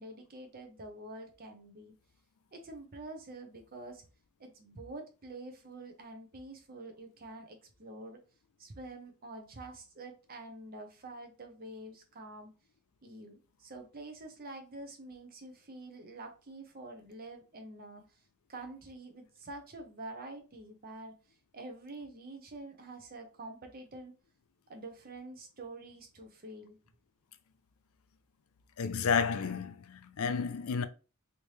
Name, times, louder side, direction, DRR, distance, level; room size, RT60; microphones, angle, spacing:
voice 1, 0.0-1.9 2.5-4.0 4.4-8.2 8.6-12.5 13.0-18.0 18.5-21.2 21.5-24.2 24.7-26.8, right 2 dB, 45° right, 0.8 m, -47 dB
voice 2, 28.8-30.8, left 6 dB, 75° left, 0.4 m, -31 dB
3.3 x 2.8 x 3.1 m
head